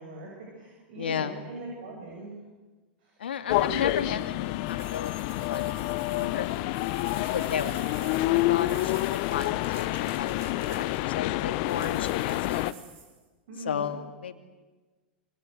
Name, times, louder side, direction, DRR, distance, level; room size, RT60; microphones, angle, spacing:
voice 1, 0.0-2.4 3.0-3.2 3.6-3.8 13.5-13.9, right 3 dB, 60° right, -1 dB, 7.8 m, -41 dB
voice 2, 1.0-1.4 3.2-6.6 7.3-12.6 13.6-14.3, left 8 dB, 75° left, 8 dB, 2.5 m, -34 dB
sound 1, 3.5-12.7, left 18 dB, 50° left, 1.0 m, -28 dB
sound 2, 4.6-11.2 11.7-13.2, right 6 dB, 45° right, 6.8 m, -49 dB
27.0 x 27.0 x 8.0 m, 1.3 s
hypercardioid pair, 100°, 6 cm